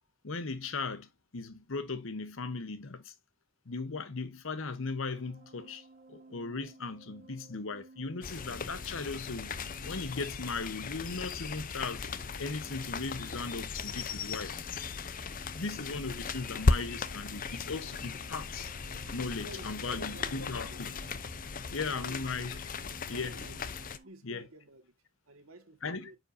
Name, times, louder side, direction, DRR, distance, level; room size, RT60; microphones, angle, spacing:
voice 1, 0.2-3.1 3.7-9.5 9.8-12.1 12.4-14.5 15.5-18.7 19.1-20.9 21.7-22.6 23.1-23.4 24.2-24.5 25.8-26.1, left 4 dB, 70° left, 1.0 m, -37 dB
sound 1, 5.1-24.1, right 2 dB, 50° right, 1.9 m, -57 dB
sound 2, 8.2-24.0, left 4 dB, 40° left, 0.6 m, -36 dB
voice 2, 19.4-20.8 21.8-22.4 23.1-23.6 24.0-24.9 25.3-26.2, right 2 dB, 90° right, 1.8 m, -50 dB
9.0 x 5.3 x 2.6 m
head